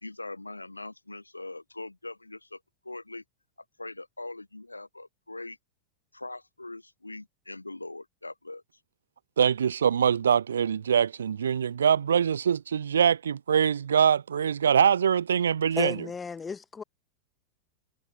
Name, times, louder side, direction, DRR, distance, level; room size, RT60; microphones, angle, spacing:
voice 1, 0.0-2.6 2.8-3.2 3.8-5.6 6.1-8.6, left 2 dB, 85° left, 2.7 m, -41 dB
voice 2, 9.4-16.0, right 8 dB, 70° right, 0.7 m, -23 dB
voice 3, 15.8-16.8, left 5 dB, 15° left, 1.1 m, -34 dB
figure-of-eight pair, 90°, 0 cm